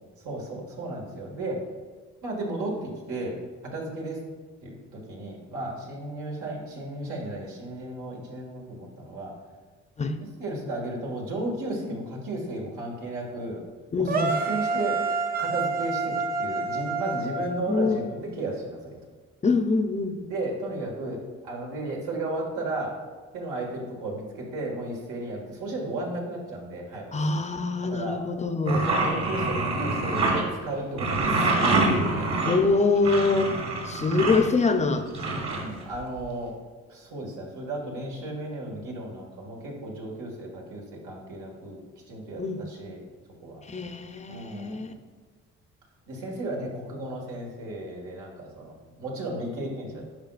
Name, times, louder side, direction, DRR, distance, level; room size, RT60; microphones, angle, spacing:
voice 1, 0.2-1.6 2.2-3.4 3.7-4.2 4.6-9.3 10.4-13.6 14.0-15.0 15.4-19.0 20.3-22.9 23.3-27.1 27.9-28.2 28.6-32.4 33.4-33.6 35.5-36.5 36.9-41.8 42.1-43.0 43.4-43.6 44.3-44.8 46.1-50.0, right 2 dB, 80° right, -1 dB, 1.9 m, -34 dB
voice 2, 13.9-14.3 17.7-18.0 19.4-20.2 27.1-28.8 32.5-33.5 33.8-35.5 42.4-42.6 43.7-44.9, left 3 dB, 25° left, 8 dB, 0.6 m, -24 dB
sound 1, 14.1-18.2, right 3 dB, 30° right, 0.7 m, -28 dB
sound 2, 28.7-30.4 31.0-34.4 35.1-36.2, right 2 dB, 60° right, 1.9 m, -26 dB
10.5 x 5.0 x 2.5 m, 1.4 s
cardioid pair, 90°, 30 cm